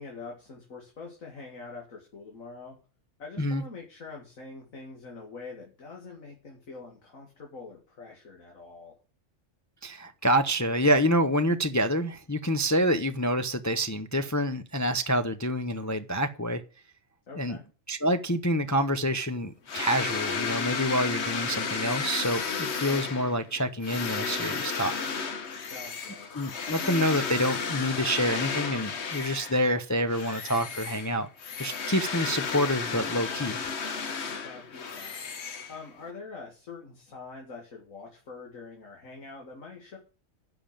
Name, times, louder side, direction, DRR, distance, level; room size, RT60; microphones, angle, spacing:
voice 1, 0.0-2.8 3.2-8.9 17.3-17.6 25.7-26.3 34.3-35.2 35.7-40.0, left 4 dB, 85° left, 2.5 m, -44 dB
voice 2, 9.8-16.6 17.4-17.6 17.9-25.0 26.3-31.3 31.6-33.6, equal, 20° left, 0.5 m, -27 dB
sound 1, 19.7-29.7 30.1-36.1, left 5 dB, 55° left, 1.4 m, -33 dB
10.5 x 5.9 x 8.7 m
omnidirectional pair, 1.4 m